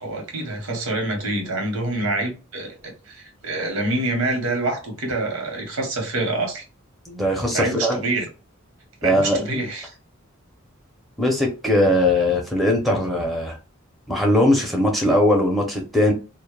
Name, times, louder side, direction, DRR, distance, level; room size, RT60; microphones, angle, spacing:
voice 1, 0.0-6.6 7.5-8.3 9.0-9.9, right 2 dB, 85° right, 0.9 m, -26 dB
voice 2, 7.1-8.0 9.0-9.4 11.2-13.6 14.1-16.1, left 1 dB, ahead, 0.5 m, -20 dB
2.2 x 2.0 x 3.0 m
head